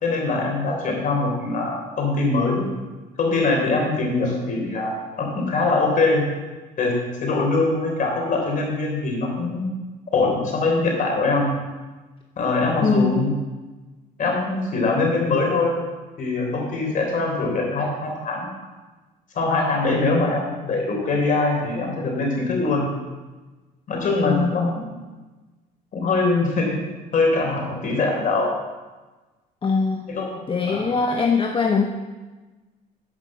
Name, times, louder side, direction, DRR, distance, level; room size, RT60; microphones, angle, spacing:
voice 1, 0.0-2.7 3.2-6.2 6.8-6.9 7.2-9.7 10.1-11.6 12.4-13.3 14.2-15.8 16.2-18.5 19.3-22.9 23.9-24.9 25.9-26.8 27.1-28.5 30.1-30.4 30.6-30.8, left 3 dB, 50° left, 0 dB, 3.8 m, -22 dB
voice 2, 12.8-13.2 24.2-24.8 29.6-30.0 30.5-31.8, left 4 dB, 30° left, 3 dB, 0.8 m, -21 dB
11.5 x 5.2 x 7.3 m, 1.2 s
cardioid pair, 110°, 17 cm